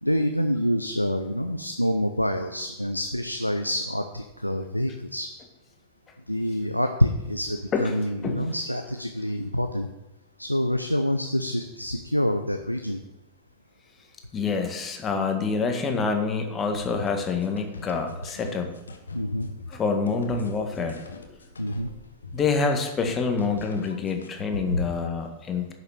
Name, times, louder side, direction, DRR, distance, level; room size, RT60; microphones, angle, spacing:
voice 1, 0.0-5.3 6.3-9.9 10.4-13.0 19.1-19.5 21.6-21.9 24.7-24.8, equal, 90° left, 6 dB, 0.6 m, -26 dB
voice 2, 7.7-8.5 14.3-18.7 19.7-21.0 22.3-25.7, left 4 dB, 25° left, 4 dB, 1.8 m, -27 dB
sound 1, 16.7-24.5, left 3 dB, 75° left, 1.2 m, -42 dB
10.5 x 6.8 x 7.0 m, 0.98 s
figure-of-eight pair, 90°, 0 cm